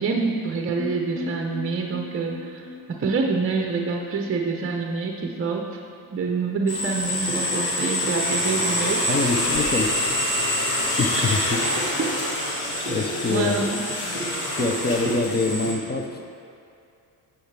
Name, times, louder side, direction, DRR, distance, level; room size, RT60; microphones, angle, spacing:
voice 1, 0.0-5.7 6.1-9.0 11.2-11.3 12.0-12.1 13.3-13.8, right 4 dB, 25° right, 2 dB, 0.7 m, -26 dB
sound 1, 0.8-4.6 4.9-5.0 5.3-5.4, left 4 dB, 40° left, 0.9 m, -38 dB
sound 2, 6.7-15.7, left 1 dB, 70° left, 1.7 m, -26 dB
sound 3, 7.0-16.1, right 1 dB, ahead, 1.6 m, -35 dB
voice 2, 9.1-10.0 11.0-11.6 12.9-13.6 14.5-16.2, left 3 dB, 20° left, 3 dB, 0.5 m, -25 dB
8.5 x 5.8 x 3.3 m, 2.5 s
supercardioid pair, 70°, 50 cm